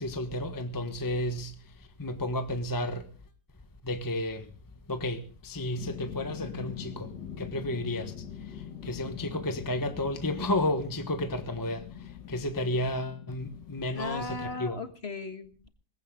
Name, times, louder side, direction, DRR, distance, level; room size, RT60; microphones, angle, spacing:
voice 1, 0.0-3.1 3.8-4.5 4.9-14.8, left 1 dB, 15° left, 1.1 m, -32 dB
sound 1, 5.8-14.7, left 9 dB, 90° left, 2.1 m, -43 dB
voice 2, 13.9-15.7, left 3 dB, 40° left, 1.7 m, -37 dB
19.5 x 15.5 x 3.8 m
omnidirectional pair, 1.8 m